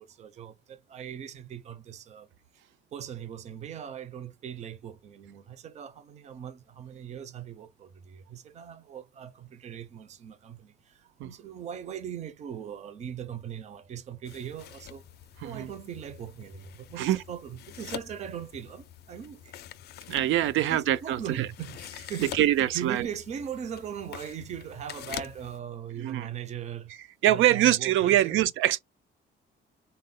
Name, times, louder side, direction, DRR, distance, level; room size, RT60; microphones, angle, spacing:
voice 1, 0.0-2.3 2.9-15.1 15.4-19.5 20.2-26.9 27.2-28.4, right 9 dB, 35° right, 0.5 m, -40 dB
sound 1, 14.3-25.6, left 11 dB, 55° left, 0.4 m, -45 dB
voice 2, 20.1-21.5 22.3-23.1 26.0-26.3 27.2-28.8, right 13 dB, 85° right, 0.5 m, -24 dB
4.2 x 2.1 x 3.6 m
cardioid pair, 175°, 20 cm